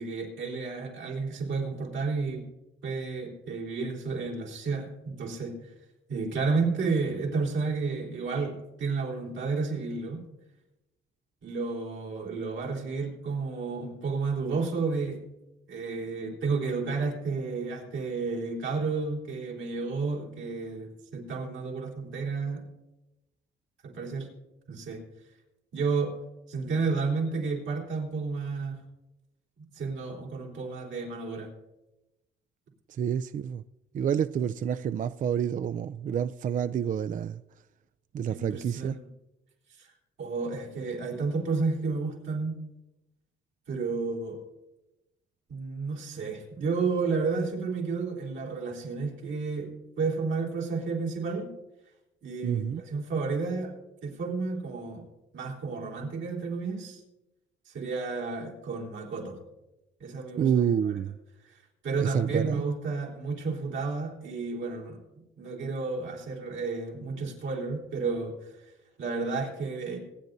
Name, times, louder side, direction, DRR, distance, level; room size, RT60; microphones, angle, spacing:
voice 1, 0.0-2.4 2.8-5.7 6.1-10.2 11.4-15.2 15.7-22.6 23.8-24.3 24.7-25.0 25.7-26.2 26.5-28.8 29.7-31.5 38.3-39.1 39.8-39.9 40.2-42.6 43.7-44.4 45.5-51.5 52.2-55.1 55.3-57.0 57.7-59.4 60.0-60.9 61.4-65.0 65.4-68.5 69.0-70.0, right 4 dB, 80° right, 3.9 m, -31 dB
voice 2, 32.9-33.6 33.9-37.4 38.1-39.0 52.4-52.8 60.4-61.2 62.0-62.6, right 8 dB, 40° right, 0.4 m, -28 dB
26.0 x 9.5 x 2.7 m
cardioid pair, 90°, 20 cm